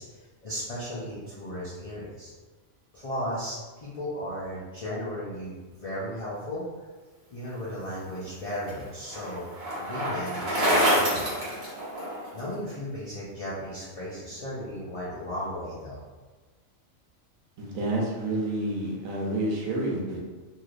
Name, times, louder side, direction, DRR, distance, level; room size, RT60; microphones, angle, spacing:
voice 1, 0.0-2.3 2.9-6.6 7.3-11.3 12.3-16.0, equal, 50° left, -10 dB, 0.4 m, -35 dB
Bicycle, 8.0-12.4, equal, 50° right, 1.3 m, -27 dB
voice 2, 17.6-20.2, right 1 dB, 80° right, -2 dB, 1.1 m, -29 dB
3.1 x 2.7 x 2.4 m, 1.3 s
omnidirectional pair, 1.4 m